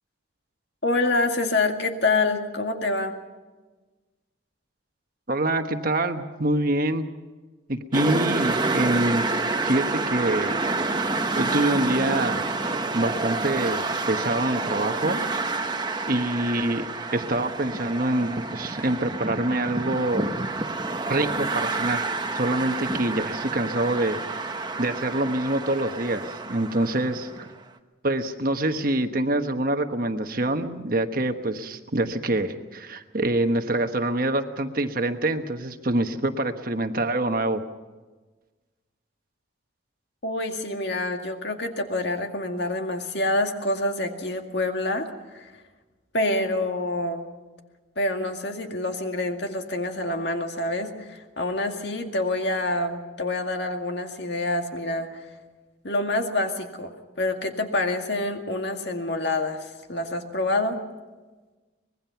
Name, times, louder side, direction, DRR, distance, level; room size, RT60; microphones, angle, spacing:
voice 1, 0.8-3.2 40.2-45.5 46.1-47.3 48.0-55.3 55.8-60.8, left 2 dB, 55° left, 4 dB, 2.1 m, -27 dB
voice 2, 5.3-7.1 7.7-9.2 9.6-10.6 11.3-12.4 12.9-15.2 16.0-16.9 17.1-20.3 21.1-24.5 24.8-27.5 28.0-37.6, right 1 dB, 45° right, 7 dB, 1.2 m, -25 dB
sound 1, 7.9-27.5, right 3 dB, 20° right, 1.0 m, -28 dB
24.5 x 20.5 x 5.8 m, 1.3 s
head